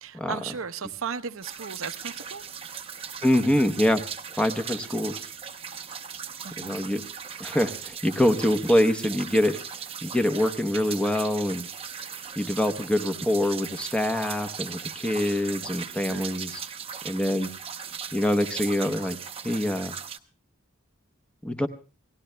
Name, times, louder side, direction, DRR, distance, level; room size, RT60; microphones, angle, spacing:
voice 1, 0.0-2.4 6.4-6.9 16.1-16.5, right 6 dB, 70° right, 0.7 m, -36 dB
sound 1, 1.4-20.2, right 7 dB, 25° right, 0.7 m, -38 dB
voice 2, 3.2-4.0 4.4-5.3 6.6-7.0 7.4-9.5 10.0-11.7 12.4-16.6 17.0-17.5 18.1-19.2 19.4-20.0 21.4-21.7, left 1 dB, 5° left, 0.7 m, -25 dB
28.5 x 18.5 x 2.2 m
head